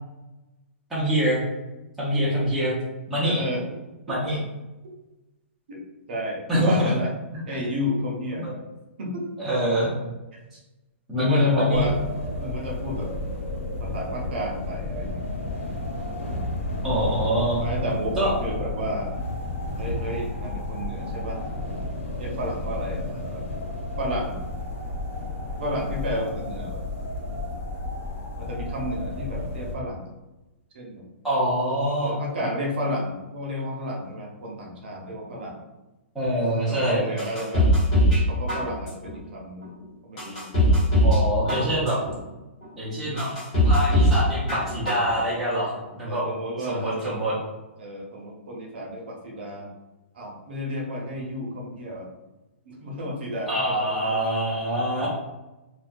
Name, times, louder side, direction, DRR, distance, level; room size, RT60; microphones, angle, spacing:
voice 1, 0.9-1.4 2.0-2.8 3.1-3.4 4.1-4.4 6.5-6.9 7.3-7.6 8.3-8.5 9.4-9.9 11.1-11.9 16.8-17.6 18.2-18.3 31.2-32.2 36.1-37.0 41.0-42.0 42.8-43.3 43.6-46.2 46.6-47.3 53.5-55.1, equal, ahead, -11 dB, 0.5 m, -25 dB
voice 2, 3.2-3.7 5.7-5.8 6.1-7.1 7.5-8.5 9.0-9.3 11.1-12.0 12.4-13.1 13.8-15.2 17.6-19.2 19.8-21.4 22.2-23.4 24.0-24.4 25.6-26.8 28.4-30.1 30.7-31.1 32.0-35.6 36.7-37.7 38.3-39.7 40.1-41.0 46.1-47.1 47.8-49.7 50.1-52.1 52.7-54.4 54.9-55.1, equal, 50° right, -1 dB, 0.6 m, -31 dB
sound 1, 11.7-29.7, left 2 dB, 85° left, 0.6 m, -32 dB
sound 2, 37.2-38.2 38.5-39.1 39.6-39.7 40.2-41.2 41.5-42.1 42.6-42.7 43.2-44.2 44.5-45.1 45.4-45.5, equal, 30° left, 1.0 m, -20 dB
2.2 x 2.2 x 2.5 m, 1.1 s
hypercardioid pair, 170°, 7 cm